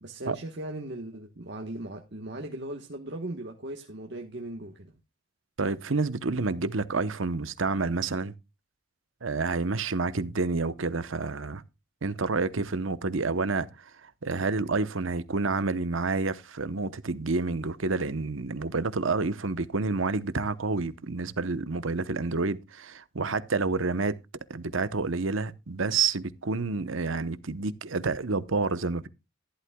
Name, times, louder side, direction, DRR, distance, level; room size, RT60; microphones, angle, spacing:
voice 1, 0.0-5.0, right 1 dB, 55° right, 1.3 m, -38 dB
voice 2, 5.6-8.3 9.2-11.6 12.0-13.7 14.0-24.2 24.5-29.1, right 3 dB, 85° right, 0.9 m, -29 dB
14.5 x 11.5 x 2.3 m
head